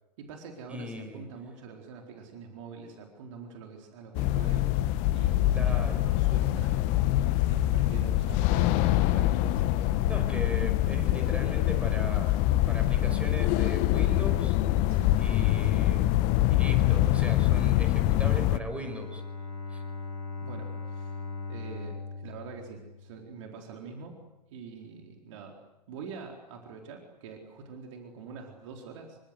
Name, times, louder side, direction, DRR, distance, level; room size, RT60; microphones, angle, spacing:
voice 1, 0.2-7.0 7.5-10.0 14.9-15.2 20.4-21.2 21.5-24.2 24.5-25.6 25.9-29.2, right 5 dB, 50° right, 2 dB, 4.3 m, -45 dB
voice 2, 0.7-1.3 5.5-6.0 10.1-12.3 12.7-14.6 15.2-16.2 16.5-19.2 19.7-19.8, equal, 5° right, 6 dB, 5.4 m, -38 dB
sound 1, 4.2-18.6, left 14 dB, 35° left, 1.2 m, -24 dB
Bowed string instrument, 18.6-23.5, left 4 dB, 85° right, 7.2 m, -39 dB
27.5 x 25.0 x 8.1 m, 0.92 s
figure-of-eight pair, 100°, 21 cm